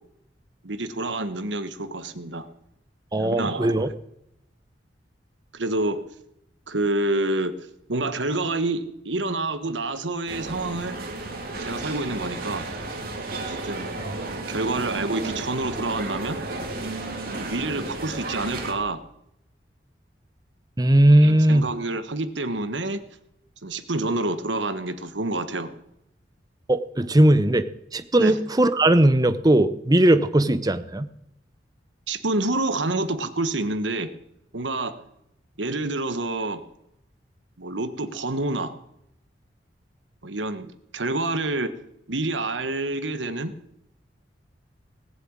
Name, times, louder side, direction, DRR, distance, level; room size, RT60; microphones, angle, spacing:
voice 1, 0.6-2.5 3.1-3.8 5.5-6.0 6.7-7.5 7.9-11.0 11.6-12.6 13.5-13.9 14.3-16.4 17.3-19.0 21.2-23.0 23.6-25.7 28.2-28.3 32.1-34.1 34.5-34.9 35.6-36.6 37.6-38.7 40.2-41.7 42.1-43.5, right 2 dB, 85° right, 11 dB, 1.4 m, -28 dB
voice 2, 3.1-3.9 20.8-21.7 26.7-27.7 27.9-31.1, right 1 dB, 20° right, 11 dB, 0.8 m, -18 dB
sound 1, 10.3-18.7, right 2 dB, 55° right, 2.8 m, -33 dB
18.5 x 7.7 x 8.9 m, 0.79 s
head